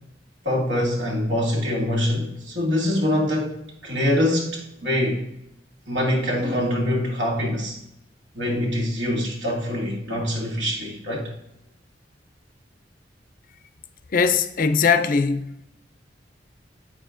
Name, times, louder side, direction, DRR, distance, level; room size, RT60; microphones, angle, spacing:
voice 1, 0.4-3.6 3.8-5.2 5.9-7.8 8.3-11.3, left 1 dB, 80° right, 2.3 m, -24 dB
voice 2, 14.1-15.6, left 5 dB, 50° left, 0.4 m, -20 dB
8.7 x 6.7 x 2.5 m
head